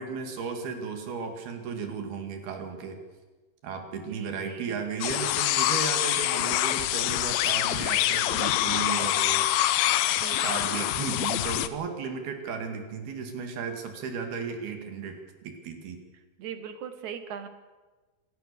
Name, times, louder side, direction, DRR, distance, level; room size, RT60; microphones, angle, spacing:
voice 1, 0.0-3.0 3.6-9.7 10.4-15.2 15.4-16.0, right 6 dB, 75° right, 5 dB, 4.2 m, -35 dB
voice 2, 4.0-4.8 10.1-10.5 16.4-17.5, right 8 dB, 60° right, 9 dB, 2.5 m, -40 dB
sound 1, 5.0-11.7, left 13 dB, 75° left, 2.5 m, -25 dB
26.0 x 16.5 x 6.9 m, 1.2 s
omnidirectional pair, 4.5 m